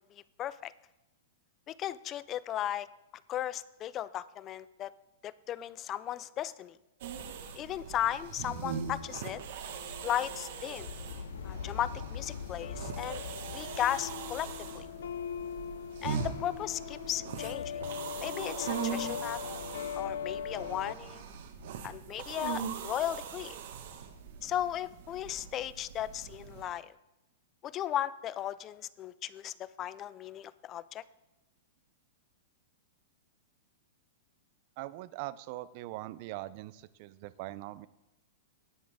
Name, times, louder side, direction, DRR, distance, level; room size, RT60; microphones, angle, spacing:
voice 1, 0.4-0.7 1.7-2.9 3.3-4.9 5.2-6.8 7.6-9.4 10.0-11.0 11.4-13.2 13.5-14.9 16.0-17.8 18.2-19.4 19.9-21.2 21.8-23.6 24.4-26.9 27.6-31.0, left 11 dB, 25° left, 18 dB, 0.3 m, -36 dB
sound 1, 7.0-26.6, right 7 dB, 60° right, 1.4 m, -41 dB
sound 2, 8.1-20.9, left 8 dB, 85° left, 0.5 m, -41 dB
voice 2, 34.8-37.9, right 17 dB, 40° right, 17 dB, 0.4 m, -41 dB
18.0 x 6.3 x 3.5 m, 0.98 s
supercardioid pair, 160°, 0 cm